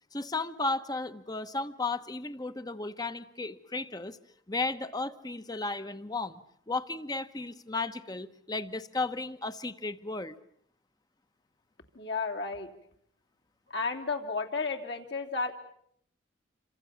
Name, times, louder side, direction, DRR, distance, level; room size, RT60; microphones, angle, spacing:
voice 1, 0.1-4.2 4.5-10.3, left 3 dB, 20° left, 1.1 m, -34 dB
voice 2, 11.9-12.7 13.7-15.5, left 4 dB, 65° left, 3.0 m, -32 dB
27.5 x 26.0 x 7.1 m
head